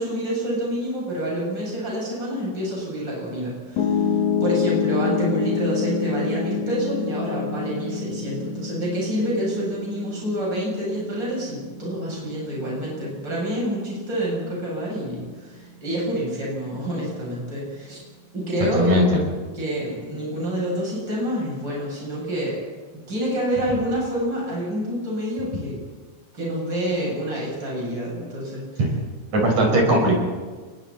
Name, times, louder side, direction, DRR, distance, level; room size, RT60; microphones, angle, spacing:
voice 1, 0.0-18.0 18.3-19.1 19.5-22.6 23.1-25.8 26.3-28.7, equal, 35° right, -4 dB, 8.8 m, -27 dB
Piano, 3.8-15.9, left 6 dB, 85° left, 3.5 m, -28 dB
voice 2, 18.7-19.2 28.8-29.0 29.3-30.1, right 1 dB, 65° right, 0 dB, 6.9 m, -19 dB
29.5 x 21.5 x 4.3 m, 1.4 s
omnidirectional pair, 3.4 m